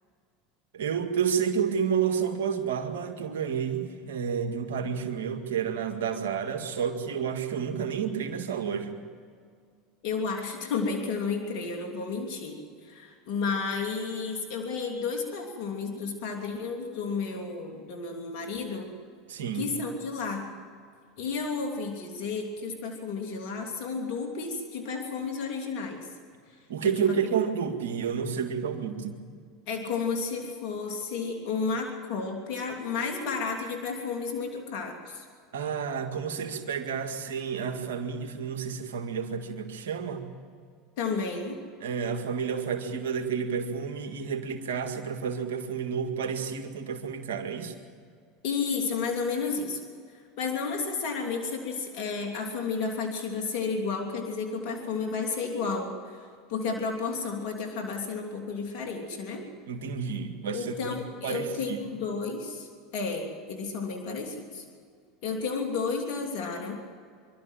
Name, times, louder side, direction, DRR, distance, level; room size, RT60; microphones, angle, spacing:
voice 1, 0.7-9.0 19.3-19.7 26.7-29.2 35.5-40.3 41.8-47.7 59.7-61.0 61.2-61.8, right 7 dB, 85° right, 5 dB, 2.0 m, -30 dB
voice 2, 10.0-18.9 19.5-20.5 21.2-26.1 26.8-27.2 29.7-35.2 41.0-41.6 48.4-49.8 50.1-59.4 60.5-64.6 65.2-66.8, left 4 dB, 65° left, 2 dB, 3.1 m, -32 dB
25.0 x 12.5 x 9.1 m, 2.1 s
hypercardioid pair, 90°, 0 cm